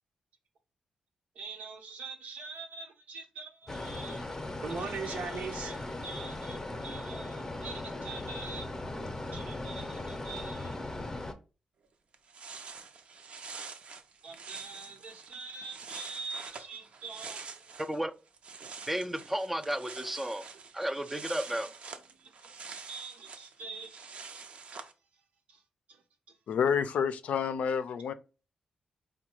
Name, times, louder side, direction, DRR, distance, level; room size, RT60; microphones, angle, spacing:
voice 1, 1.3-4.2 4.6-8.7 9.3-10.7 14.2-17.6 22.2-22.3 22.6-24.4 25.5-25.6 25.9-26.0, right 4 dB, 80° right, 1.0 m, -43 dB
sound 1, 3.7-11.3, left 2 dB, 20° left, 0.7 m, -38 dB
sound 2, 11.8-11.9 12.1-18.0 18.3-24.9, right 5 dB, 60° right, 0.6 m, -46 dB
voice 2, 18.9-20.4 20.7-21.7, right 1 dB, 10° right, 0.4 m, -33 dB
voice 3, 26.5-28.1, left 7 dB, 80° left, 0.4 m, -29 dB
4.6 x 2.2 x 4.5 m
cardioid pair, 115°, 2 cm